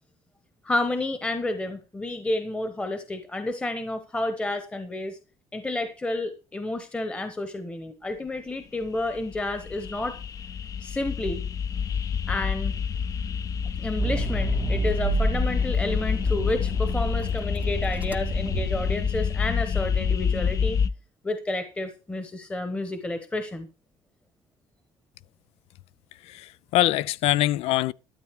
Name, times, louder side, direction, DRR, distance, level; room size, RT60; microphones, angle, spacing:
voice 1, 0.6-5.2 5.5-10.2 10.8-11.4 12.3-12.7 13.8-20.8 21.2-23.7, left 2 dB, 10° left, 1.1 m, -30 dB
sound 1, 8.9-20.9, left 6 dB, 35° left, 0.6 m, -27 dB
Accelerating revving vroom, 14.0-19.4, right 4 dB, 15° right, 0.6 m, -30 dB
voice 2, 26.3-27.9, left 15 dB, 90° left, 0.5 m, -23 dB
13.0 x 8.5 x 4.7 m
cardioid pair, 155°, 10 cm